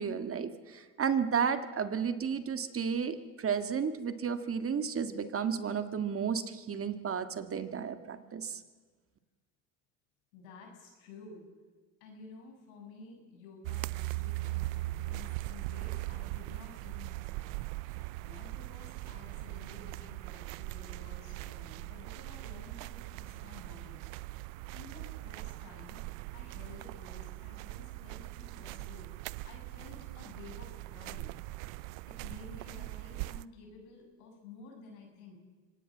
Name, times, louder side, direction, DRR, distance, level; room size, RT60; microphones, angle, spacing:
voice 1, 0.0-8.6, right 7 dB, 35° right, 9 dB, 1.8 m, -33 dB
voice 2, 10.3-11.5 12.0-17.5 17.9-24.0 24.7-26.0 26.3-29.1 29.4-31.3 32.1-35.4, left 4 dB, 90° left, 2 dB, 6.9 m, -52 dB
sound 1, 13.6-33.5, right 20 dB, 80° right, 0.6 m, -40 dB
24.0 x 18.5 x 7.4 m, 1.4 s
supercardioid pair, 100°, 41 cm